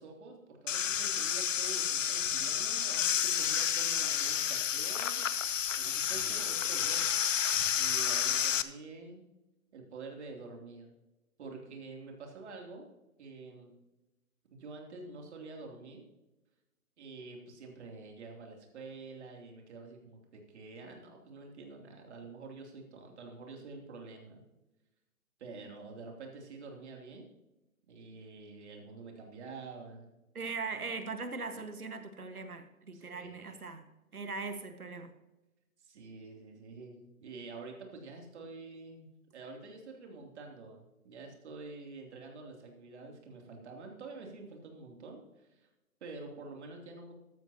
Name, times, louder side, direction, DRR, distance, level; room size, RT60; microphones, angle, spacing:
voice 1, 0.0-5.2 5.8-7.2 7.8-9.2 9.7-10.9 11.4-12.9 13.2-13.8 14.5-16.0 17.0-24.4 25.4-27.3 27.9-30.1 32.9-33.6 35.8-39.1 39.3-45.7 46.0-47.1, right 3 dB, 50° right, 1 dB, 3.1 m, -47 dB
sound 1, 0.7-8.6, left 8 dB, 60° left, 0.9 m, -30 dB
voice 2, 30.3-33.9 34.1-35.1, right 4 dB, 85° right, 8 dB, 1.7 m, -40 dB
14.5 x 12.5 x 2.9 m, 1.0 s
figure-of-eight pair, 135°, 43 cm